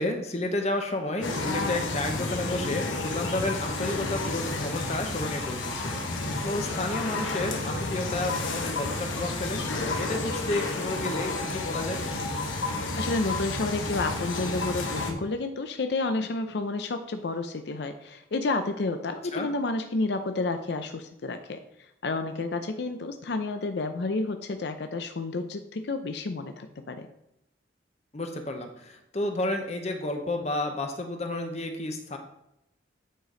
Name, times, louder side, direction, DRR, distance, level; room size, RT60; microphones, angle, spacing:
voice 1, 0.0-12.1 19.3-19.5 28.1-32.2, left 2 dB, 35° left, 4 dB, 0.8 m, -31 dB
sound 1, 1.2-15.1, left 2 dB, 90° left, 1.2 m, -31 dB
voice 2, 13.0-21.6 22.0-27.1, left 3 dB, 60° left, 7 dB, 0.5 m, -30 dB
8.8 x 5.1 x 3.8 m, 0.86 s
head